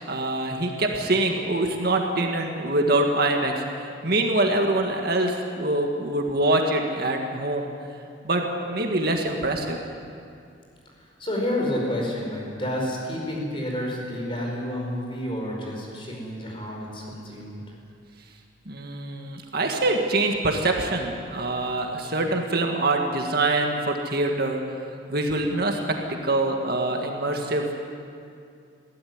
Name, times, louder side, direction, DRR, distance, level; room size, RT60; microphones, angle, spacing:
voice 1, 0.1-7.7 8.2-9.8 18.7-24.6 25.1-25.8 26.1-27.9, right 2 dB, 50° right, 2 dB, 1.9 m, -24 dB
voice 2, 11.2-17.6, left 1 dB, 25° left, -1 dB, 5.1 m, -30 dB
22.0 x 16.0 x 9.7 m, 2.4 s
head